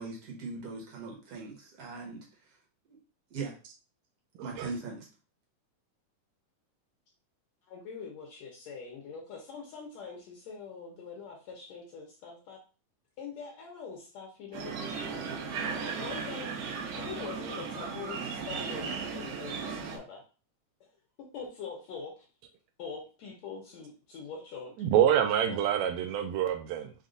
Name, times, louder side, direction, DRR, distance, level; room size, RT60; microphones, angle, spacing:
voice 1, 0.0-2.2 3.3-3.5 4.4-5.1, right 4 dB, 55° right, 2.0 m, -39 dB
voice 2, 4.4-4.7 24.8-26.9, right 10 dB, 90° right, 1.6 m, -26 dB
voice 3, 7.7-12.6 13.2-14.8 16.0-20.2 21.2-22.3 22.8-24.8 25.4-25.9, left 5 dB, 70° left, 1.9 m, -43 dB
sound 1, 14.5-20.0, right 5 dB, 75° right, 2.5 m, -36 dB
5.5 x 2.4 x 3.8 m
omnidirectional pair, 3.7 m